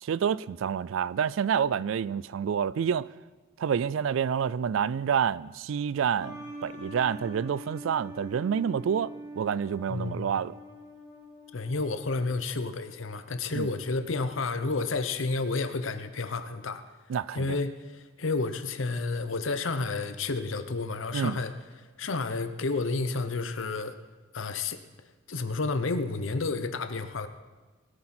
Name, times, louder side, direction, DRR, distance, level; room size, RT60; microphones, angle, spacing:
voice 1, 0.0-3.1 3.6-10.5 13.5-13.7 17.1-17.6 21.1-21.4, right 7 dB, 70° right, 0.3 m, -28 dB
sound 1, 6.2-12.5, equal, 20° right, 4.0 m, -44 dB
voice 2, 9.9-10.4 11.5-16.8 17.3-21.5 22.0-24.0 24.3-24.8 25.3-27.3, left 3 dB, 70° left, 0.8 m, -31 dB
20.0 x 8.7 x 4.3 m
head